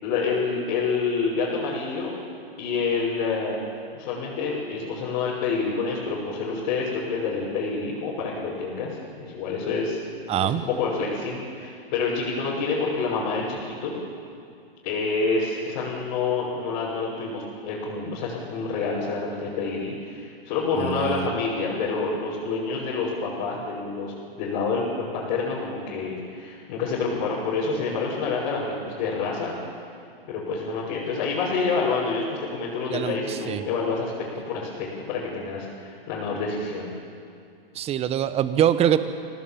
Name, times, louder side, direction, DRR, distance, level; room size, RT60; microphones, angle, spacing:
voice 1, 0.0-2.1 2.6-3.6 3.9-8.9 9.2-10.0 10.4-13.9 14.8-29.6 30.3-34.1 34.4-36.9, left 4 dB, 45° left, -7 dB, 6.4 m, -28 dB
voice 2, 10.3-10.6 20.8-21.3 32.9-33.7 37.7-39.0, right 10 dB, 20° right, 12 dB, 1.0 m, -24 dB
25.0 x 18.5 x 7.6 m, 2.4 s
hypercardioid pair, 125°, 30 cm